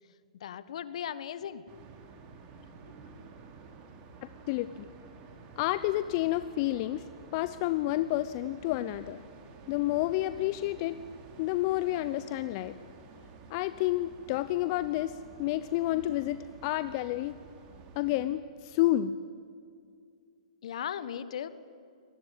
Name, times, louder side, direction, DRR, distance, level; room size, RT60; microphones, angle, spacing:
voice 1, 0.4-1.6 20.6-21.5, left 9 dB, 65° left, 15 dB, 1.3 m, -37 dB
sound 1, 1.7-18.3, right 4 dB, 35° right, 3.4 m, -51 dB
voice 2, 4.5-4.9 5.6-7.0 7.3-9.2 9.7-11.0 11.4-12.7 13.5-17.4 18.0-19.2, left 15 dB, 45° left, 13 dB, 0.7 m, -30 dB
24.5 x 19.5 x 9.3 m, 2.3 s
hypercardioid pair, 125°, 4 cm